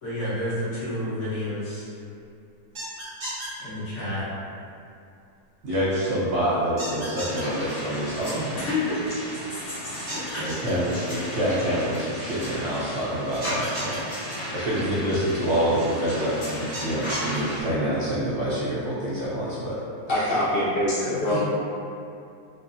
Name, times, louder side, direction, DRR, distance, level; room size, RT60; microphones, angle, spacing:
voice 1, 0.0-1.9 3.6-4.3 8.3-9.2 9.5-10.7 21.0-21.4, left 1 dB, 55° left, -10 dB, 1.3 m, -30 dB
sound 1, 2.7-3.5 6.8-7.4 10.1-10.7 13.4-14.0 16.7-17.4, right 1 dB, 80° right, 1.7 m, -33 dB
voice 2, 5.6-8.6 10.4-14.0 14.5-19.8 20.3-20.4, equal, 60° right, -8 dB, 0.8 m, -26 dB
sound 2, 7.3-17.6, equal, 30° left, 0.9 m, -35 dB
voice 3, 20.1-21.4, left 1 dB, 85° left, -8 dB, 0.5 m, -24 dB
5.2 x 2.1 x 2.6 m, 2.6 s
omnidirectional pair, 1.7 m